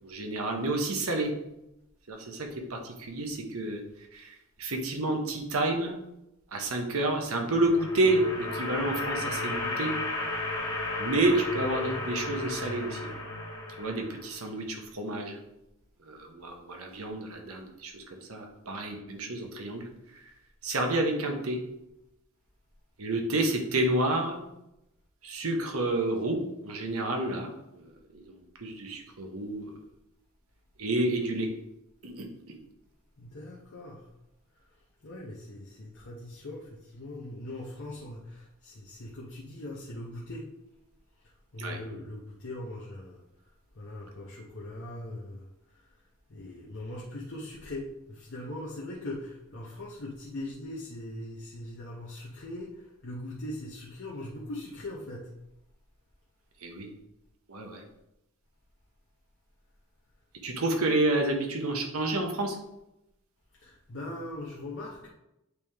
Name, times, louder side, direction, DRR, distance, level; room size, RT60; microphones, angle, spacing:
voice 1, 0.0-1.3 2.1-3.8 4.1-5.9 6.5-9.9 11.0-13.1 13.8-15.4 16.1-19.9 20.1-20.2 20.6-21.6 23.0-24.4 25.2-27.9 28.1-28.2 28.6-29.7 30.8-31.5 32.0-32.6 41.6-41.8 56.6-56.9 57.5-57.8 60.4-62.6, right 2 dB, 75° right, 3 dB, 1.1 m, -29 dB
sound 1, 7.3-14.4, left 2 dB, 20° left, 1.6 m, -34 dB
voice 2, 33.2-34.1 35.0-40.5 41.2-43.2 43.7-45.9 46.3-55.3 63.5-65.1, left 1 dB, 60° left, -4 dB, 0.9 m, -41 dB
8.2 x 3.4 x 3.5 m, 0.88 s
head